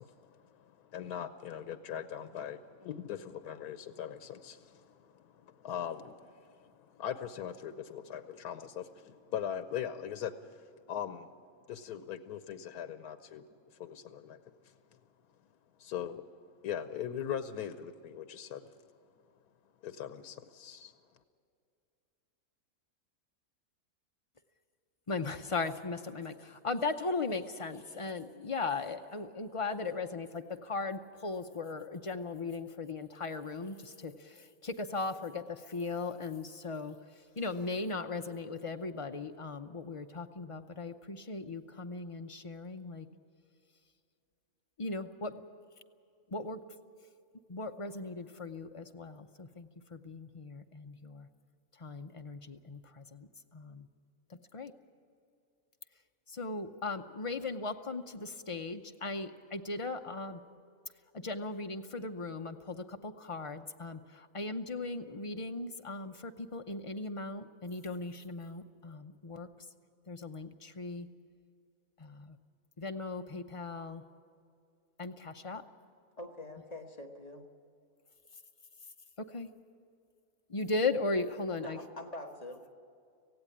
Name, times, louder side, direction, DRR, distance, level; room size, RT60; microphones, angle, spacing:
voice 1, 0.0-11.3 11.7-13.4 13.8-14.7 15.8-16.2 16.6-18.7 19.8-20.9, left 9 dB, 90° left, 11 dB, 1.3 m, -41 dB
voice 2, 25.1-37.0 37.4-43.1 44.8-45.3 46.3-46.6 47.5-51.3 51.8-53.3 53.5-53.9 54.5-54.7 56.3-60.4 61.2-69.5 70.1-71.1 72.0-72.4 72.8-74.0 75.0-75.6 79.3-79.5 80.5-81.8, left 3 dB, 45° left, 6 dB, 0.4 m, -38 dB
voice 3, 76.2-77.4 81.6-82.6, left 1 dB, 25° left, 3 dB, 1.4 m, -45 dB
17.5 x 16.0 x 9.9 m, 2.4 s
omnidirectional pair, 1.6 m